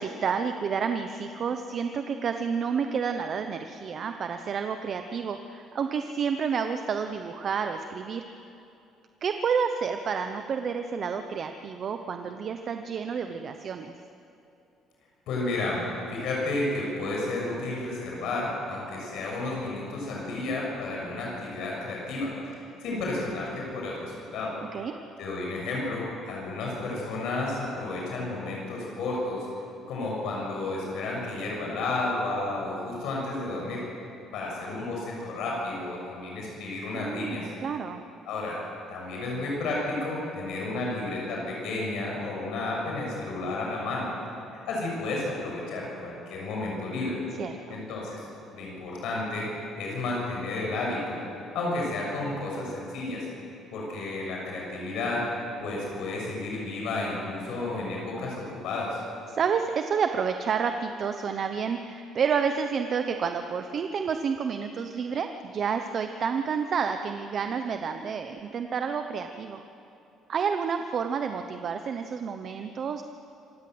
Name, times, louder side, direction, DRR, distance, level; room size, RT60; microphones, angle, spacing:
voice 1, 0.0-8.2 9.2-13.9 24.7-24.9 36.9-38.0 47.4-47.8 59.3-69.6 70.3-73.0, right 6 dB, 40° right, 7 dB, 0.9 m, -30 dB
voice 2, 15.3-24.5 25.2-29.5 29.9-33.8 34.3-37.5 38.2-38.6 38.9-44.1 44.7-47.2 47.7-49.5 49.8-51.2 51.5-53.3 53.7-55.2 55.6-59.0, left 2 dB, 70° left, -3 dB, 6.7 m, -32 dB
26.5 x 17.0 x 8.0 m, 2.7 s
cardioid pair, 150°, 0 cm